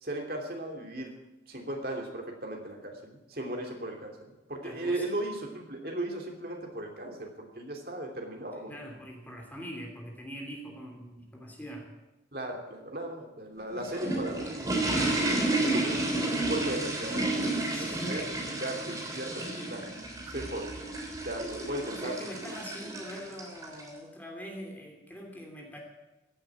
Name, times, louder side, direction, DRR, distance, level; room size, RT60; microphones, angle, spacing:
voice 1, 0.0-1.2 1.5-8.7 12.3-14.8 15.6-19.9 20.3-20.9 21.2-22.3, right 1 dB, 55° right, 1 dB, 2.9 m, -37 dB
voice 2, 4.6-5.1 8.7-11.9 17.7-18.1 21.9-25.8, equal, 10° left, 0 dB, 2.9 m, -43 dB
sound 1, 13.6-23.9, right 2 dB, 20° right, 3.2 m, -31 dB
15.5 x 8.6 x 8.8 m, 1.0 s
head